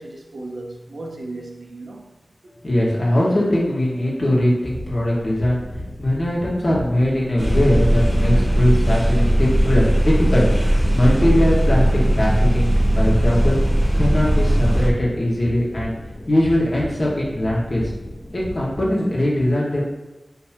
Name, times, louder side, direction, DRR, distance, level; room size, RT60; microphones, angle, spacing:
voice 1, 0.0-2.1, right 2 dB, 75° right, 0 dB, 1.0 m, -35 dB
voice 2, 2.6-5.6 6.0-13.6 13.9-16.0 16.3-17.8 18.3-19.9, left 1 dB, 55° left, -5 dB, 2.0 m, -20 dB
sound 1, 4.6-18.8, left 1 dB, 75° left, 1.4 m, -34 dB
sound 2, 7.4-14.9, right 1 dB, 5° right, 1.4 m, -18 dB
9.6 x 3.4 x 3.1 m, 1.1 s
wide cardioid pair, 75°, 0 cm